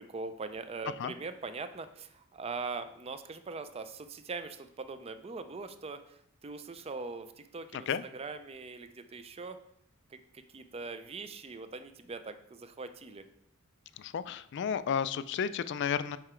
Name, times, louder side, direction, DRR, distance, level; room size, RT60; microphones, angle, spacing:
voice 1, 0.0-9.6 10.1-13.3, right 4 dB, 30° right, 10 dB, 0.4 m, -42 dB
voice 2, 14.0-16.2, left 7 dB, 55° left, 14 dB, 0.3 m, -32 dB
6.8 x 4.7 x 4.4 m, 0.74 s
head